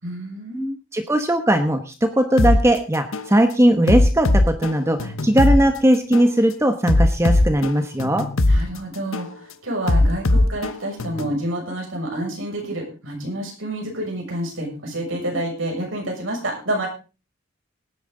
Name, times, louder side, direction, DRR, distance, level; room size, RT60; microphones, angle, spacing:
voice 1, 0.0-0.7 8.5-16.9, right 1 dB, 75° right, 0 dB, 6.7 m, -28 dB
voice 2, 0.9-8.3, right 1 dB, 15° right, 7 dB, 1.0 m, -19 dB
sound 1, 2.4-2.6 3.1-3.3 3.9-5.6 6.1-6.3 6.9-8.6 9.1-9.3 9.9-11.4, left 2 dB, 85° left, 1.0 m, -19 dB
18.0 x 10.0 x 3.9 m, 0.34 s
head